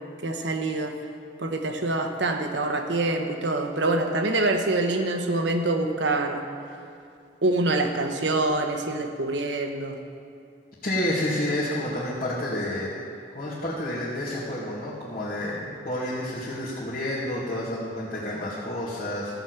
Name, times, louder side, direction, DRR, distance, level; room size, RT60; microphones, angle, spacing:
voice 1, 0.2-1.0 1.4-6.5 7.4-10.0, right 2 dB, 80° right, 5 dB, 1.1 m, -25 dB
voice 2, 10.8-12.9 13.3-19.4, left 1 dB, 50° left, -10 dB, 2.1 m, -29 dB
14.0 x 6.2 x 8.1 m, 2.5 s
head